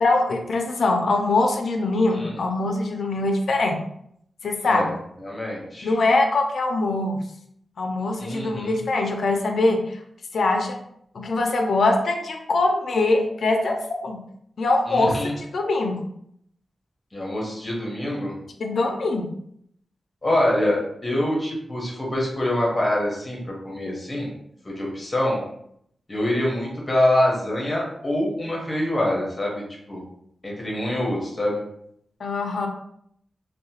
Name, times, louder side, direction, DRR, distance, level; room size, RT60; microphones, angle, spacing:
voice 1, 0.0-3.8 4.4-4.9 5.8-7.2 7.8-10.0 10.3-10.8 11.1-14.2 14.6-16.0 18.6-19.3 32.2-32.7, left 2 dB, 65° left, 3 dB, 0.4 m, -23 dB
voice 2, 5.2-5.9 8.2-8.8 14.9-15.3 17.1-18.3 20.2-24.3 24.6-25.4 26.1-29.6 29.9-30.0 30.4-31.6, left 1 dB, 25° left, -2 dB, 0.8 m, -25 dB
2.7 x 2.1 x 2.8 m, 0.71 s
wide cardioid pair, 130°, 0 cm